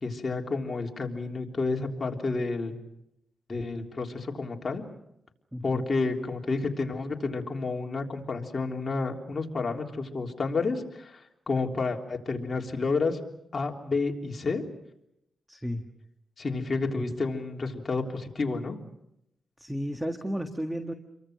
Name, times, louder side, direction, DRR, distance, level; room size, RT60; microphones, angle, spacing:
voice 1, 0.0-2.7 3.5-4.8 5.6-13.2 13.5-14.6 16.4-18.8, left 3 dB, 40° left, 1 dB, 3.5 m, -30 dB
voice 2, 5.5-5.8 15.5-15.9 16.9-17.0 19.6-20.9, equal, 5° right, 6 dB, 1.7 m, -33 dB
29.5 x 23.5 x 6.4 m, 0.80 s
cardioid pair, 95°, 0 cm